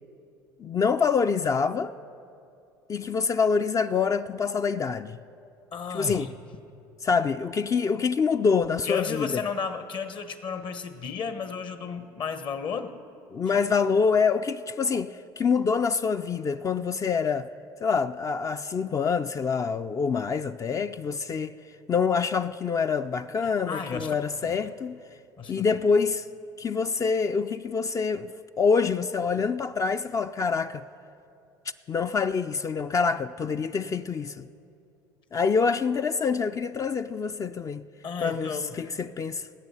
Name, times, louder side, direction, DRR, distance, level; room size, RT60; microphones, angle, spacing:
voice 1, 0.6-1.9 2.9-5.2 5.9-6.3 7.0-9.3 13.3-17.5 17.8-21.6 21.9-25.0 25.5-26.3 26.6-30.9 31.9-34.5 35.3-37.9 38.2-39.5, left 5 dB, 30° left, 0.4 m, -26 dB
voice 2, 5.7-6.3 8.8-13.0 23.4-24.1 25.4-25.7 38.0-38.9, left 6 dB, 45° left, 1.1 m, -33 dB
18.5 x 8.2 x 5.6 m
hypercardioid pair, 75°, 11 cm